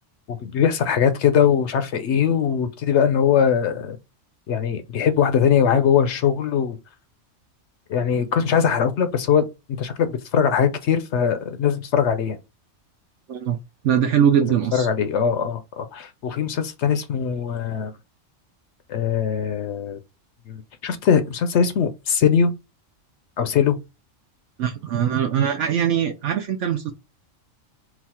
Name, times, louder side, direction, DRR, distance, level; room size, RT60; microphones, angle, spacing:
voice 1, 0.3-4.0 4.5-6.8 7.9-9.4 9.8-12.4 14.5-17.9 18.9-20.0 20.5-22.5 23.4-23.8, left 7 dB, 65° left, 0.8 m, -21 dB
voice 2, 13.8-14.9 24.6-26.9, right 8 dB, 70° right, 0.9 m, -21 dB
4.0 x 2.4 x 4.2 m
omnidirectional pair, 1.3 m